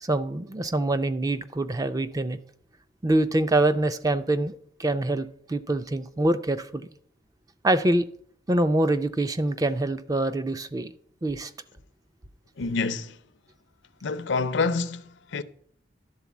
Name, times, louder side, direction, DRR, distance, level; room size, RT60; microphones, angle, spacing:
voice 1, 0.0-2.4 3.0-4.5 4.8-6.9 7.6-8.1 8.5-10.9 11.2-11.5, right 2 dB, 20° right, 0.3 m, -25 dB
voice 2, 12.6-13.2 14.0-15.4, left 4 dB, 70° left, 0.5 m, -27 dB
11.5 x 3.9 x 7.1 m
head